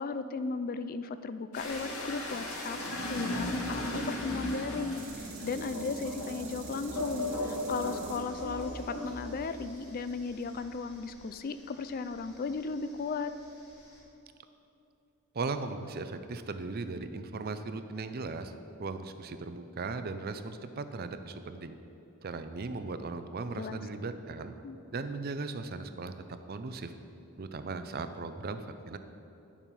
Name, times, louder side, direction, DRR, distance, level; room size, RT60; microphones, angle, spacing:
voice 1, 0.0-13.3 23.6-23.8 24.6-24.8, left 4 dB, 40° left, 12 dB, 0.3 m, -36 dB
sound 1, 1.5-12.5 12.8-14.0, left 1 dB, 85° left, 1.9 m, -37 dB
sound 2, 3.2-11.3, right 3 dB, 70° right, 1.5 m, -48 dB
voice 2, 15.3-18.5 18.8-21.8 22.2-24.5 24.9-26.9 27.4-29.0, right 3 dB, 45° right, 10 dB, 0.5 m, -37 dB
10.0 x 7.3 x 5.4 m, 2.9 s
head